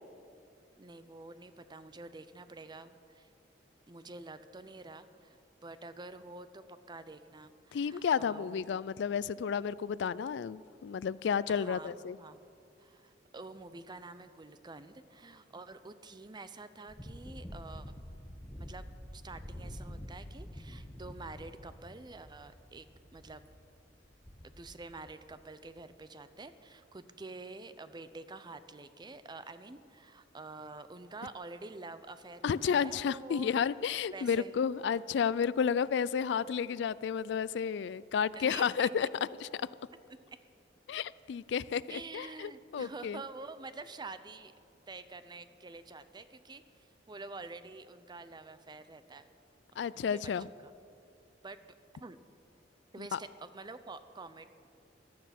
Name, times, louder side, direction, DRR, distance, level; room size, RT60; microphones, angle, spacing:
voice 1, 0.8-3.3 3.9-8.7 11.5-12.4 12.8-18.0 18.6-18.8 19.1-22.9 23.1-23.4 24.4-33.5 34.1-34.5 34.9-35.0 38.3-39.1 40.3-40.4 41.9-44.5 44.9-49.3 49.7-50.3 50.6-50.7 51.4-51.6 52.0-52.2 52.9-54.5, right 3 dB, 25° right, 12 dB, 0.6 m, -48 dB
voice 2, 7.7-12.2 32.4-39.1 39.4-39.6 40.9-43.2 49.8-50.5 53.0-53.2, left 7 dB, 70° left, 19 dB, 0.3 m, -32 dB
sound 1, 16.9-25.4 25.7-25.8, equal, 10° left, 1.3 m, -47 dB
16.0 x 12.0 x 5.9 m, 2.4 s
head